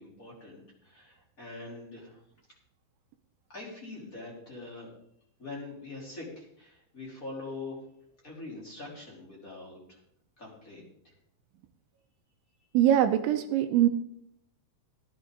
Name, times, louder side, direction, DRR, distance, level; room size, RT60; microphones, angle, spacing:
voice 1, 0.0-2.2 3.5-4.9 5.4-7.8 8.2-10.0 10.4-11.1, left 2 dB, 20° left, -3 dB, 3.1 m, -43 dB
voice 2, 12.7-13.9, right 11 dB, 85° right, 7 dB, 2.8 m, -22 dB
17.5 x 10.5 x 3.8 m, 0.70 s
omnidirectional pair, 5.9 m